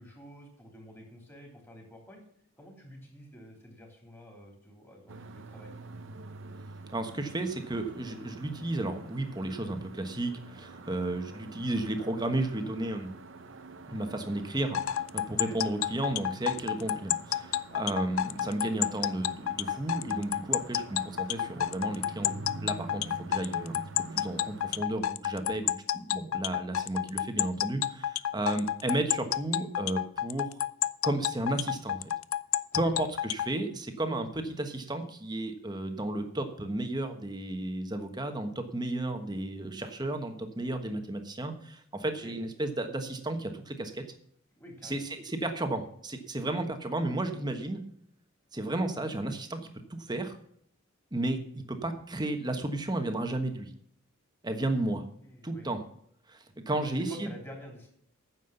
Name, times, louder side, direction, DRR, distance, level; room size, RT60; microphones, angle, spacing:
voice 1, 0.0-2.2 2.6-5.7 15.3-15.6 18.4-19.0 32.7-33.0 42.2-42.4 44.5-45.0 46.5-46.7 54.8-55.7 56.7-57.9, equal, 10° left, 0 dB, 3.2 m, -49 dB
sound 1, 5.1-24.8, right 3 dB, 60° right, 0.8 m, -47 dB
voice 2, 6.9-13.1 13.9-23.8 24.1-30.6 31.0-32.0 32.7-44.0 44.8-47.8 48.5-49.6 49.9-50.4 51.1-53.7 54.4-55.0 55.4-55.8 56.3-57.3, right 2 dB, 20° right, 6 dB, 1.3 m, -33 dB
sound 2, 14.7-33.5, left 11 dB, 75° left, 0.4 m, -30 dB
9.6 x 7.3 x 7.0 m, 0.66 s
head